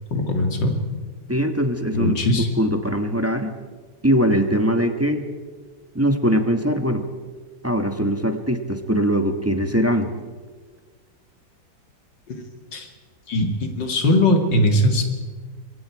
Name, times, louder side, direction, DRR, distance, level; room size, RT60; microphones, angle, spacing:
voice 1, 0.1-0.7 1.9-2.5 12.3-12.4 12.7-12.9 13.3-13.5 13.8-15.1, left 1 dB, 70° left, 4 dB, 3.0 m, -20 dB
voice 2, 1.3-3.5 4.0-5.2 5.9-7.1 7.6-10.1, equal, 10° right, 6 dB, 1.1 m, -21 dB
25.5 x 23.0 x 4.8 m, 1.5 s
omnidirectional pair, 2.1 m